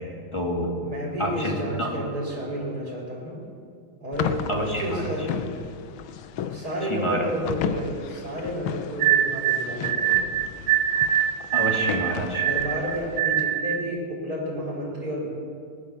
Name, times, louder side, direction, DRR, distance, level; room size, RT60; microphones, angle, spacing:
voice 1, 0.3-0.7 1.2-2.0 4.5-5.0 6.9-7.3 11.5-12.5, equal, 15° left, -1 dB, 2.2 m, -28 dB
voice 2, 0.8-3.4 4.0-5.5 6.5-10.3 12.5-15.3, equal, 50° right, -4 dB, 4.0 m, -31 dB
sound 1, 4.1-13.2, left 8 dB, 85° left, 1.6 m, -35 dB
sound 2, 9.0-13.9, right 10 dB, 70° right, 1.3 m, -23 dB
21.5 x 9.5 x 7.1 m, 2.3 s
omnidirectional pair, 2.2 m